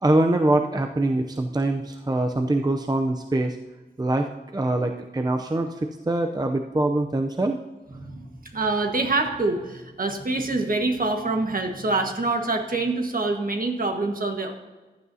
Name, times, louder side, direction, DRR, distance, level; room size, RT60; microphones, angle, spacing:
voice 1, 0.0-3.6 4.0-7.6, right 2 dB, 20° right, 5 dB, 0.6 m, -24 dB
voice 2, 7.9-14.5, right 3 dB, 55° right, 3 dB, 1.5 m, -25 dB
15.0 x 11.0 x 2.8 m, 1.2 s
wide cardioid pair, 100°, 18 cm